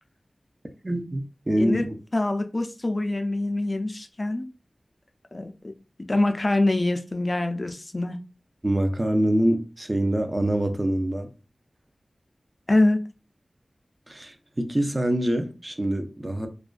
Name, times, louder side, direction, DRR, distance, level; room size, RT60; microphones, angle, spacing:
voice 1, 0.8-1.9 8.6-11.3 14.1-16.5, right 1 dB, 30° right, 0.5 m, -25 dB
voice 2, 2.1-4.5 5.3-5.7 6.1-8.2 12.7-13.0, left 2 dB, 40° left, 0.3 m, -24 dB
2.4 x 2.1 x 2.3 m
cardioid pair, 45°, 0 cm